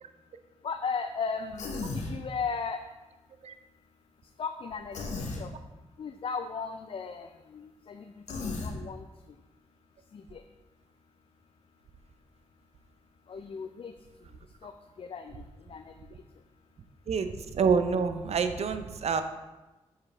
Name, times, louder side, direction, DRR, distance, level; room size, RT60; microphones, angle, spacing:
voice 1, 0.6-2.8 4.4-5.5 6.0-9.1 10.1-10.4 13.3-13.9 14.6-14.7 15.0-15.4 15.7-15.9, left 5 dB, 50° left, 7 dB, 0.4 m, -36 dB
Human voice, 1.6-2.2 4.9-5.4 8.3-8.7, left 3 dB, 80° left, 0.9 m, -34 dB
voice 2, 17.1-19.2, right 5 dB, 65° right, 9 dB, 0.5 m, -27 dB
7.0 x 4.8 x 3.2 m, 1.1 s
supercardioid pair, 45°, 12 cm